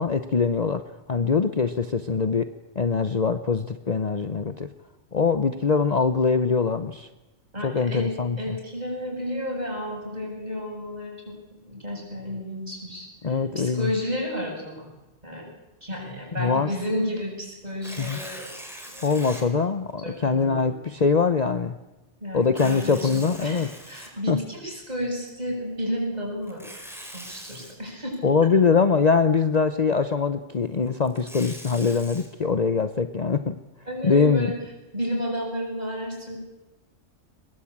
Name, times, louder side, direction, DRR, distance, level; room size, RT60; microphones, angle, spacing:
voice 1, 0.0-4.7 5.1-7.1 7.6-8.6 13.2-13.9 16.4-16.7 18.0-18.2 19.0-21.8 22.3-23.7 24.3-24.4 28.2-33.6 34.0-34.5, left 5 dB, 35° left, 10 dB, 0.9 m, -23 dB
voice 2, 7.5-8.1 8.4-14.9 15.2-15.5 15.8-18.5 18.9-19.2 20.0-20.8 22.2-26.6 27.1-28.5 33.9-34.5 34.9-36.4, equal, 35° right, -1 dB, 8.2 m, -32 dB
Tearing, 17.7-19.4 20.1-20.2 22.4-24.6 26.4-27.7 30.9-32.3, equal, ahead, 4.6 m, -42 dB
22.5 x 21.5 x 8.7 m, 1.1 s
omnidirectional pair, 1.2 m